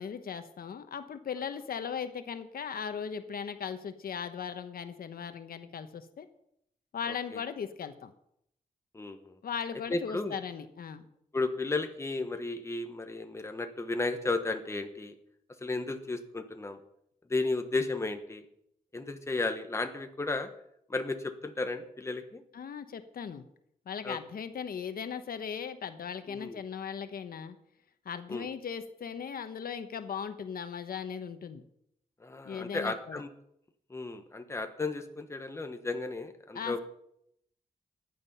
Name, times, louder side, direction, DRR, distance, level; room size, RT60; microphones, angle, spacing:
voice 1, 0.0-6.3 6.9-8.1 9.4-11.0 22.5-23.5 23.9-27.6 28.0-31.6 32.4-33.2 36.5-36.8, left 7 dB, 85° left, 9 dB, 1.1 m, -38 dB
voice 2, 7.1-7.4 8.9-9.4 9.9-10.4 11.3-15.1 15.6-16.8 17.3-18.4 18.9-20.5 20.9-22.4 24.0-24.2 26.3-26.6 28.3-28.5 32.2-33.3 33.9-36.8, left 3 dB, 20° left, 7 dB, 1.2 m, -34 dB
15.0 x 10.5 x 5.5 m, 0.74 s
wide cardioid pair, 160°, 15 cm